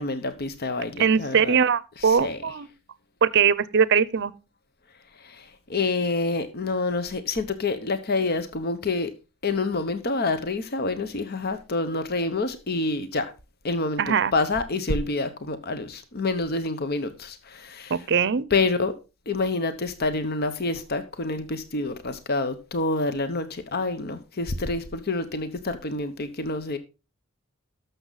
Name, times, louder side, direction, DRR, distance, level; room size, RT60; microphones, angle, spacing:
voice 1, 0.0-1.6 2.0-2.4 5.2-5.4 5.7-9.1 9.4-13.3 13.6-18.0 18.5-18.9 19.3-26.8, left 3 dB, 45° left, 0.9 m, -27 dB
voice 2, 1.0-2.7 3.2-4.3 14.0-14.3 17.9-18.5, right 6 dB, 55° right, 0.6 m, -21 dB
12.5 x 6.7 x 4.0 m
head